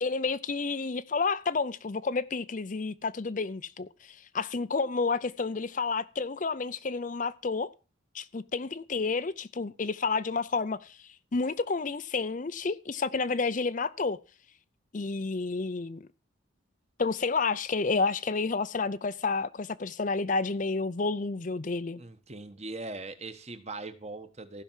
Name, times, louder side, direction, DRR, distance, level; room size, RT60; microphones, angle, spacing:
voice 1, 0.0-7.7 8.1-11.0 11.3-14.2 14.9-16.1 17.0-22.0, left 4 dB, 40° left, 0.5 m, -30 dB
voice 2, 22.0-24.6, right 2 dB, 30° right, 1.2 m, -40 dB
15.5 x 5.8 x 7.4 m
head